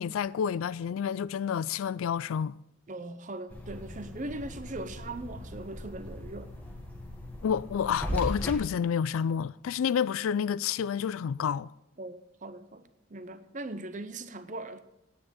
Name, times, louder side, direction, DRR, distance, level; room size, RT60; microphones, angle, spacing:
voice 1, 0.0-2.5 7.4-11.7, left 7 dB, 85° left, 0.3 m, -29 dB
voice 2, 2.9-6.5 12.0-14.8, right 2 dB, 40° right, 0.7 m, -40 dB
sound 1, 3.5-8.5, equal, 5° left, 1.5 m, -38 dB
9.5 x 8.7 x 7.2 m
head